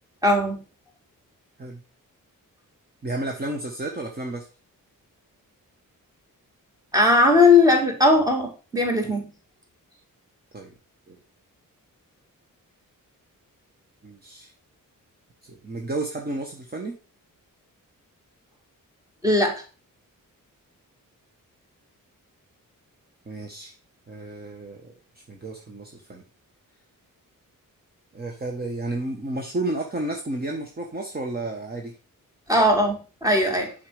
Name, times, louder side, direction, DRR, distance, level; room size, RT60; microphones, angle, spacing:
voice 1, 0.2-0.6 6.9-9.3 19.2-19.6 32.5-33.7, left 2 dB, 10° right, 2 dB, 2.4 m, -19 dB
voice 2, 3.0-4.5 10.5-10.7 11.1-11.2 14.0-14.5 15.4-17.0 23.3-23.7 24.1-24.9 25.3-26.2 28.1-31.9, right 2 dB, 30° right, 3 dB, 1.3 m, -32 dB
9.6 x 5.8 x 5.0 m, 0.34 s
wide cardioid pair, 170°, 34 cm